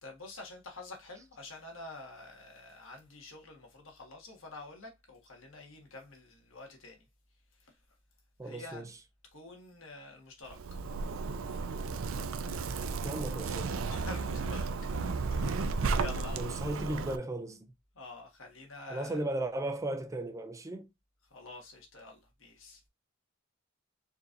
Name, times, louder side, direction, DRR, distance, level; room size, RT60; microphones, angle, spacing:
voice 1, 0.0-7.1 7.5-7.8 8.4-8.9 9.2-10.7 11.4-11.6 13.9-14.9 15.3-16.6 17.9-19.3 21.2-22.8, left 2 dB, 65° left, 1.6 m, -48 dB
voice 2, 8.4-8.9 13.0-13.8 15.2-15.3 16.4-17.7 18.9-20.9, right 1 dB, 15° right, 0.4 m, -36 dB
Zipper (clothing), 10.5-17.2, right 4 dB, 70° right, 0.5 m, -34 dB
4.5 x 3.8 x 2.6 m
head